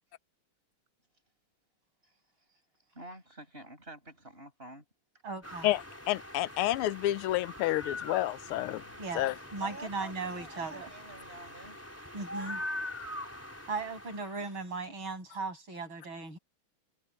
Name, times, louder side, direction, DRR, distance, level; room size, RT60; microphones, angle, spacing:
voice 1, 2.9-4.8 9.6-11.8, right 2 dB, 25° right, 6.9 m, -48 dB
voice 2, 5.2-5.7 9.0-10.9 12.1-12.6 13.7-16.4, right 4 dB, 70° right, 8.8 m, -37 dB
sound 1, 5.4-14.6, left 1 dB, 5° left, 4.1 m, -43 dB
voice 3, 6.1-8.8 9.1-9.3, left 15 dB, 85° left, 1.5 m, -29 dB
omnidirectional pair, 2.3 m